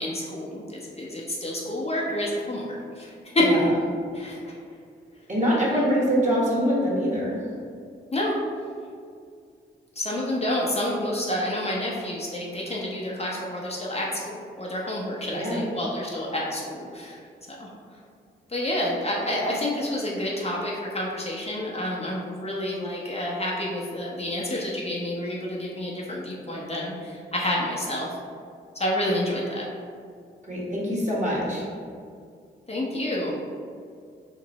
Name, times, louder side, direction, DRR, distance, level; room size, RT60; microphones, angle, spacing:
voice 1, 0.0-3.5 4.1-4.6 5.7-5.9 8.1-8.3 10.0-17.2 17.6-17.7 18.5-28.1 28.7-29.7 32.7-33.3, left 1 dB, 30° left, -4 dB, 0.8 m, -29 dB
voice 2, 5.3-7.4 15.3-15.6 30.5-31.7, equal, 35° right, -7 dB, 1.5 m, -24 dB
3.0 x 2.5 x 3.9 m, 2.2 s
supercardioid pair, 40°, 21 cm